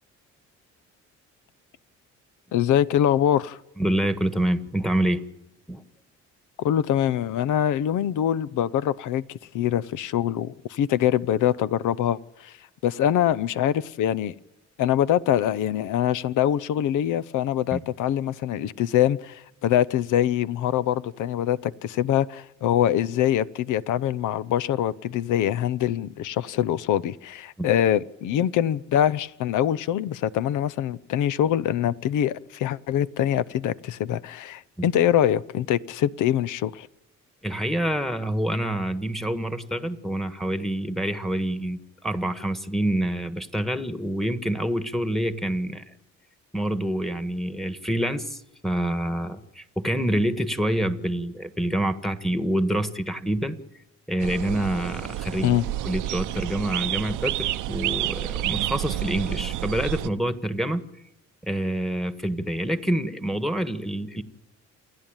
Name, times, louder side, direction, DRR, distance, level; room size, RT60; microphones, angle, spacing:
voice 1, 2.5-3.6 6.6-9.2 9.5-12.5 12.8-14.3 14.8-36.9 55.4-55.6, left 11 dB, 85° left, 0.8 m, -24 dB
voice 2, 3.8-5.2 5.7-5.8 17.7-17.8 27.6-27.7 34.8-34.9 37.4-45.8 46.5-48.4 48.6-53.6 54.1-55.6 55.8-60.8 61.4-64.2, right 1 dB, ahead, 1.6 m, -27 dB
sound 1, 54.2-60.1, right 15 dB, 90° right, 0.8 m, -29 dB
29.0 x 11.0 x 9.0 m
cardioid pair, 90°, 30 cm